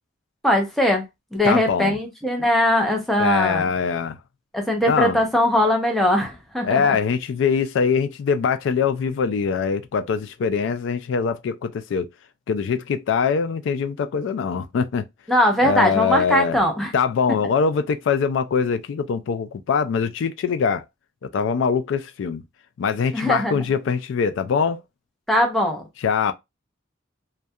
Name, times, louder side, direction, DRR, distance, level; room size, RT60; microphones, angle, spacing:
voice 1, 0.4-1.0 1.3-3.7 4.5-7.0 15.3-16.9 23.1-23.6 25.3-25.8, left 1 dB, ahead, 0.6 m, -20 dB
voice 2, 1.4-1.9 3.2-4.2 4.9-5.2 6.6-12.1 12.5-15.1 15.6-16.6 16.9-20.8 21.2-22.4 22.8-24.8 26.0-26.3, left 6 dB, 70° left, 0.3 m, -23 dB
2.3 x 2.2 x 2.7 m
head